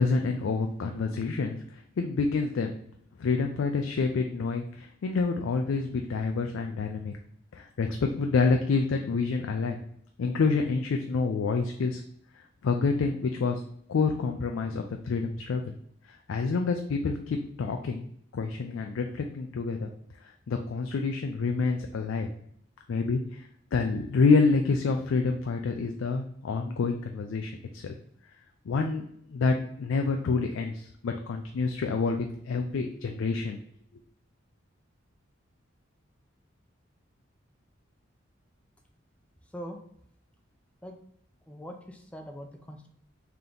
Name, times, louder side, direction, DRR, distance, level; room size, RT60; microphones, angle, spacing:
voice 1, 0.0-2.7 3.2-7.2 7.5-9.8 10.2-12.0 12.6-13.6 13.9-15.7 16.1-18.1 18.3-19.9 20.5-22.3 22.9-23.4 23.7-27.9 28.7-29.0 29.3-33.6, left 4 dB, 80° left, 4 dB, 0.4 m, -27 dB
voice 2, 41.5-42.9, equal, 5° left, 3 dB, 0.4 m, -42 dB
3.5 x 2.8 x 3.7 m, 0.67 s
head